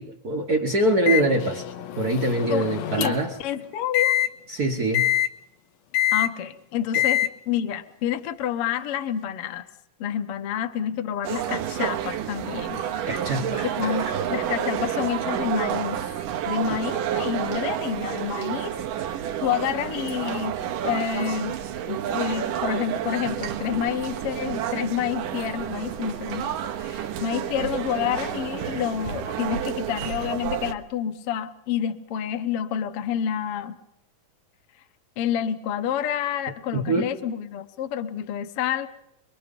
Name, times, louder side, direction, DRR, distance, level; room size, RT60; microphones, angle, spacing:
voice 1, 0.0-1.6 2.0-3.4 4.5-5.1 6.9-7.0 13.1-14.2 36.7-37.1, right 2 dB, 60° right, 2 dB, 1.0 m, -24 dB
Microwave oven, 1.1-3.4 3.9-4.3 4.9-5.3 5.9-6.3 6.9-7.3, left 12 dB, 80° left, 2.6 m, -24 dB
voice 2, 3.0-4.2 6.1-9.7 10.0-12.8 13.8-16.0 16.5-18.7 19.0-20.6 20.8-21.6 21.9-33.8 35.2-38.9, left 9 dB, 60° left, 8 dB, 1.6 m, -28 dB
sound 1, 11.2-30.7, right 10 dB, 85° right, 2.7 m, -30 dB
25.5 x 23.0 x 5.3 m, 0.82 s
omnidirectional pair, 3.7 m